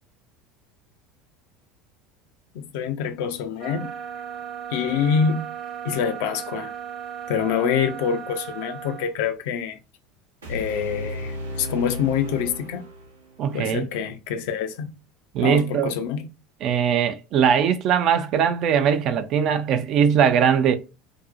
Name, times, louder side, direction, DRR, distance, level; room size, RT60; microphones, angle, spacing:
voice 1, 2.5-3.9 4.7-5.5 5.8-6.7 7.3-9.8 10.5-12.8 13.5-14.9 15.4-16.3, left 7 dB, 65° left, 0.4 m, -26 dB
sound 1, 3.6-9.1, right 8 dB, 35° right, 0.7 m, -36 dB
sound 2, 10.4-13.5, equal, 85° right, 0.6 m, -34 dB
voice 2, 13.4-13.9 15.3-15.9 16.6-20.8, right 8 dB, 50° right, 0.3 m, -20 dB
2.5 x 2.0 x 2.4 m
hypercardioid pair, 75°, 0 cm